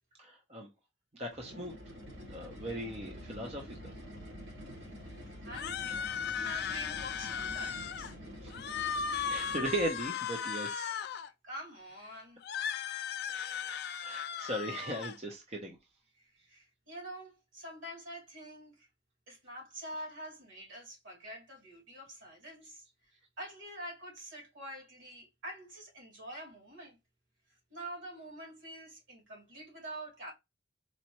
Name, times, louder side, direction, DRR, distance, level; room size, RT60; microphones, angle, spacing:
voice 1, 0.2-0.7 1.2-1.7 2.3-3.9 8.4-8.5 9.3-11.0 12.8-15.8, right 1 dB, 35° right, 0.8 m, -38 dB
sound 1, 1.3-10.1, equal, 65° right, 2.2 m, -47 dB
voice 2, 5.1-8.1 8.7-9.1 11.4-12.4 16.1-18.9 19.3-27.0 27.5-30.3, right 1 dB, 85° right, 2.5 m, -46 dB
sound 2, 5.5-8.1 8.5-11.3 12.4-15.2, left 7 dB, 55° left, 0.3 m, -37 dB
4.3 x 2.5 x 2.9 m
head